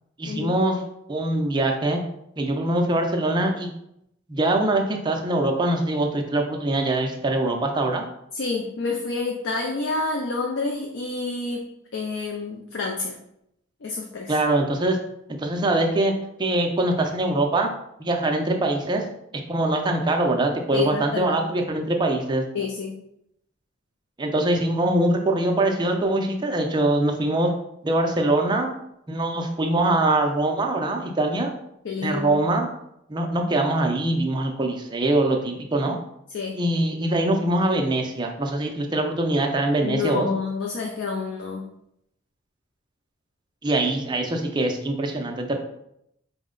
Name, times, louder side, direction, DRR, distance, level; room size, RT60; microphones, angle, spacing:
voice 1, 0.2-0.8 1.1-2.0 2.4-3.7 4.3-8.0 14.3-15.0 15.4-16.1 16.4-17.7 18.0-19.1 19.5-22.4 24.2-27.5 27.8-28.7 29.1-31.5 32.0-32.7 33.1-36.0 36.5-40.3 43.6-45.6, right 2 dB, 20° right, 3 dB, 0.4 m, -23 dB
voice 2, 8.3-11.7 11.9-13.2 13.8-14.3 20.7-21.4 22.5-22.9 31.8-32.4 36.3-36.6 39.8-41.6, left 4 dB, 60° left, 0 dB, 0.4 m, -28 dB
4.2 x 2.1 x 3.7 m, 0.78 s
head